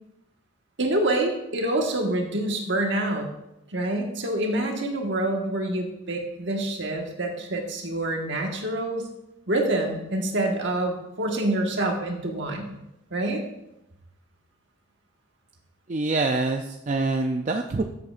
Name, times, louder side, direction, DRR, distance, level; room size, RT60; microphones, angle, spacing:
voice 1, 0.8-3.3 3.7-9.1 9.5-12.8 13.1-13.4, right 1 dB, 55° right, 2 dB, 1.4 m, -26 dB
voice 2, 15.9-17.8, right 3 dB, 35° right, 4 dB, 0.4 m, -25 dB
13.5 x 7.8 x 2.5 m, 0.86 s
head